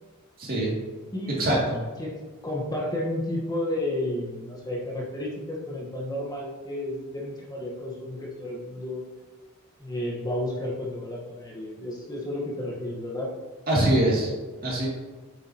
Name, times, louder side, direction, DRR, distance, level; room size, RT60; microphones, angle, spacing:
voice 1, 0.4-0.7 1.4-1.8 13.7-14.3 14.6-14.9, right 1 dB, 45° right, -4 dB, 2.5 m, -23 dB
voice 2, 2.0-9.0 9.8-13.4, left 1 dB, 20° left, -4 dB, 1.2 m, -32 dB
8.6 x 6.6 x 2.9 m, 1.3 s
head